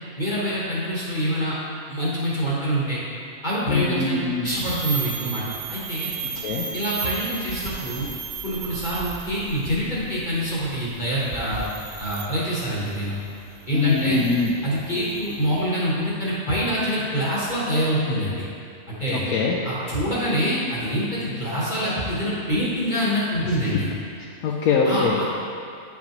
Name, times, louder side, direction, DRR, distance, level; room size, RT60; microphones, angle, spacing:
voice 1, 0.2-1.6 1.9-3.0 3.4-5.4 5.7-6.1 6.7-8.1 8.4-11.6 12.0-13.2 13.7-14.2 14.6-18.5 18.9-19.2 19.6-23.9 24.8-25.2, equal, 35° left, -8 dB, 1.2 m, -25 dB
voice 2, 3.7-4.5 6.4-6.7 13.7-14.5 19.1-19.6 24.2-25.2, left 4 dB, 80° left, -2 dB, 1.1 m, -23 dB
sound 1, 4.5-15.6, right 6 dB, 85° right, 0.4 m, -35 dB
8.6 x 5.9 x 2.9 m, 2.4 s
omnidirectional pair, 1.5 m